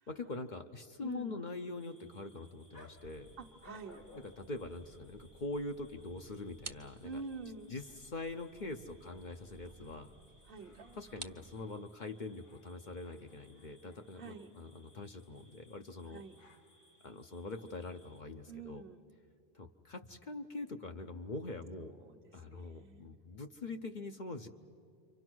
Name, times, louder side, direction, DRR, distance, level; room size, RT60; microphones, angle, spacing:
voice 1, 0.1-3.3 4.1-7.2 7.7-10.1 11.0-16.2 17.0-18.8 19.5-21.9 22.3-24.5, left 3 dB, 50° left, 5 dB, 0.9 m, -43 dB
voice 2, 1.0-1.4 3.4-4.0 7.0-7.7 10.4-10.7 14.1-14.6 16.1-16.3 18.5-19.0 21.8-23.1, right 4 dB, 60° right, 7 dB, 1.3 m, -47 dB
sound 1, 1.7-18.2, left 2 dB, 70° left, 2.0 m, -64 dB
sound 2, 3.0-11.6, right 4 dB, 35° right, 0.7 m, -55 dB
28.5 x 24.5 x 6.2 m, 2.4 s
omnidirectional pair, 1.0 m